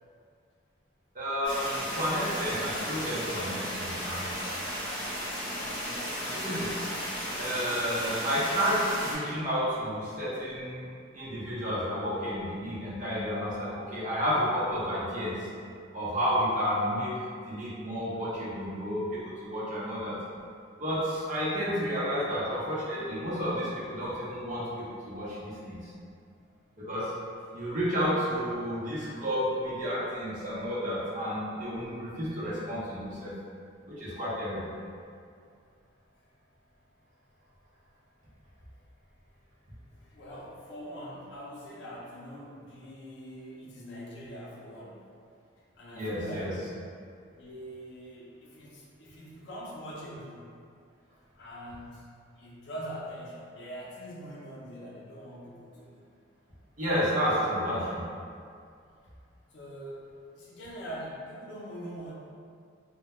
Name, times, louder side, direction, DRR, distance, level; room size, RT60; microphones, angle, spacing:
voice 1, 1.1-4.3 6.3-6.7 7.4-10.8 11.1-15.5 15.9-20.2 20.8-25.8 26.8-27.1 27.5-33.3 33.9-34.6 45.9-46.5 56.8-58.0, equal, 40° right, -9 dB, 0.6 m, -31 dB
sound 1, 1.4-9.2, equal, 5° left, 0.5 m, -35 dB
voice 2, 5.5-6.2 40.0-45.0 45.8-46.7 47.3-50.4 51.3-52.1 52.4-56.0 59.5-60.0 60.3-62.1, equal, 60° left, -5 dB, 0.5 m, -43 dB
2.2 x 2.1 x 2.9 m, 2.3 s
head